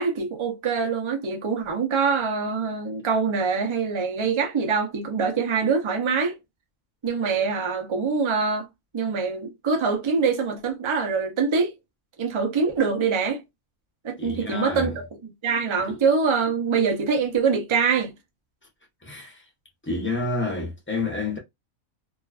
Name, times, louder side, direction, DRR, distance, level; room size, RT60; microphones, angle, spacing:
voice 1, 0.0-6.4 7.0-8.7 8.9-11.7 12.2-13.4 14.0-18.1, right 5 dB, 45° right, 0.3 m, -24 dB
voice 2, 14.2-15.0 19.0-19.4 19.8-21.4, left 3 dB, 10° left, 0.6 m, -29 dB
2.5 x 2.2 x 2.3 m
omnidirectional pair, 1.4 m